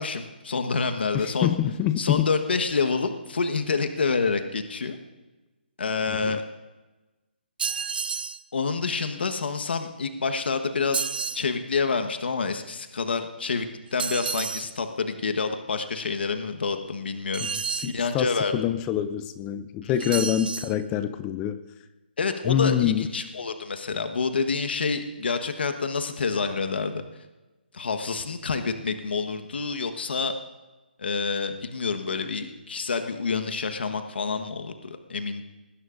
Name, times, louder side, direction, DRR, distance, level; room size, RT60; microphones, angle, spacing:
voice 1, 0.0-1.5 2.0-5.0 5.8-6.4 8.5-11.1 11.3-17.5 17.8-18.6 19.8-19.9 22.2-27.0 27.7-30.3 31.0-35.4, left 4 dB, 70° left, 7 dB, 1.3 m, -28 dB
voice 2, 1.1-2.3 6.1-6.3 17.4-17.5 17.7-21.6 22.4-23.1, left 10 dB, 15° left, 12 dB, 0.4 m, -26 dB
sound 1, 7.6-8.4 10.9-11.5 14.0-14.7 17.3-18.0 20.0-20.7, right 6 dB, 60° right, 0.7 m, -30 dB
20.0 x 16.0 x 2.6 m, 1.1 s
hypercardioid pair, 160°, 6 cm